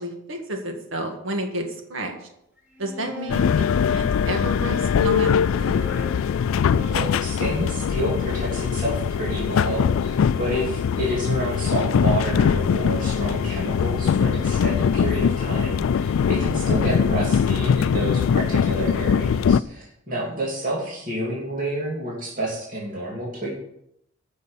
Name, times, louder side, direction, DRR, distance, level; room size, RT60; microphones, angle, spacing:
voice 1, 0.0-2.3 2.8-5.8 20.1-20.4, equal, 70° right, 3 dB, 1.8 m, -31 dB
sound 1, 2.6-4.5 5.3-9.4, left 1 dB, 10° right, 3.6 m, -42 dB
sound 2, 3.3-19.6, left 7 dB, 80° left, 0.3 m, -22 dB
voice 2, 6.9-23.5, right 1 dB, 40° right, -5 dB, 2.8 m, -29 dB
9.7 x 6.4 x 7.2 m, 0.77 s
head